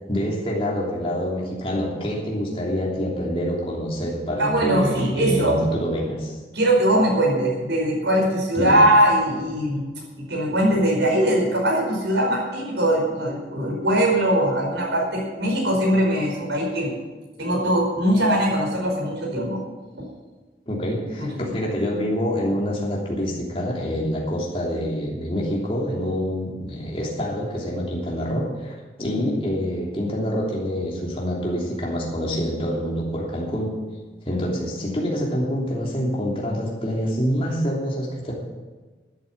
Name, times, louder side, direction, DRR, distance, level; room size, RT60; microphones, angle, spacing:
voice 1, 0.1-6.4 8.6-8.8 20.7-33.8 34.2-38.3, equal, 30° left, -3 dB, 3.2 m, -26 dB
voice 2, 4.4-5.6 6.5-9.8 10.2-16.9 17.4-19.6 21.2-21.5, right 1 dB, 85° right, -2 dB, 5.2 m, -21 dB
12.5 x 8.9 x 8.6 m, 1.3 s
head